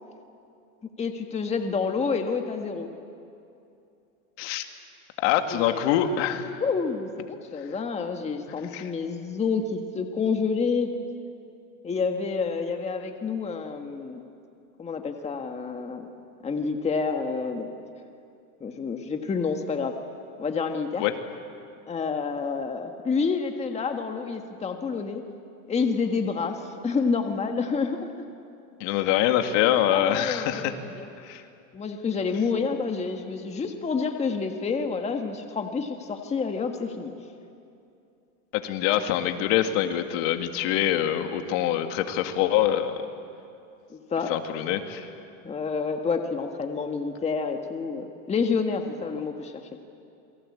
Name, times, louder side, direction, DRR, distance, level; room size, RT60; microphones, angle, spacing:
voice 1, 1.0-2.9 5.5-6.1 6.6-10.9 11.8-14.2 14.8-16.1 16.4-17.7 18.6-19.9 20.4-21.0 21.9-25.2 25.7-28.2 29.9-31.1 31.7-37.1 43.9-44.3 45.4-49.5, left 5 dB, 15° left, 4 dB, 1.6 m, -28 dB
voice 2, 5.2-6.6 7.6-7.7 8.7-8.9 21.0-21.1 28.8-30.7 31.2-31.4 38.5-43.0 44.3-45.1, left 11 dB, 55° left, 6 dB, 2.2 m, -25 dB
28.5 x 23.0 x 8.6 m, 2.6 s
supercardioid pair, 140°, 43 cm